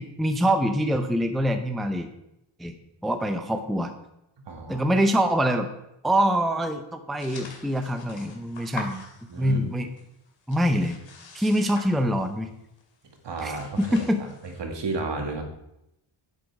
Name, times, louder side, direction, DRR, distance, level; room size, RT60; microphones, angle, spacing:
voice 1, 0.0-2.1 2.6-2.7 3.0-3.9 4.7-5.7 6.0-9.0 9.4-9.9 10.5-11.0 11.3-12.5 13.4-13.5 13.8-14.2, equal, ahead, 7 dB, 0.7 m, -24 dB
voice 2, 4.4-4.8 9.3-9.7 13.2-15.4, right 3 dB, 60° right, 3 dB, 2.1 m, -33 dB
sound 1, 7.2-9.7 10.0-12.5 12.8-13.0 13.2-14.6, left 4 dB, 65° left, 2.5 m, -44 dB
10.5 x 8.3 x 4.8 m, 0.84 s
wide cardioid pair, 135°, 49 cm